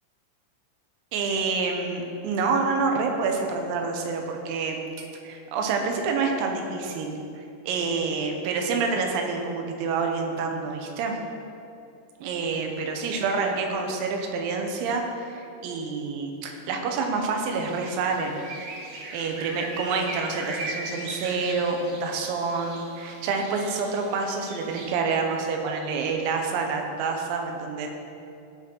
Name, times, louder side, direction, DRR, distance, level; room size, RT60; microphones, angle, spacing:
voice 1, 1.1-4.8 5.2-11.2 12.2-18.5 19.1-27.9, right 4 dB, 85° right, 2 dB, 3.8 m, -27 dB
sound 1, 17.3-24.9, right 2 dB, 60° right, 2.1 m, -39 dB
17.0 x 6.1 x 4.6 m, 2.6 s
omnidirectional pair, 6.0 m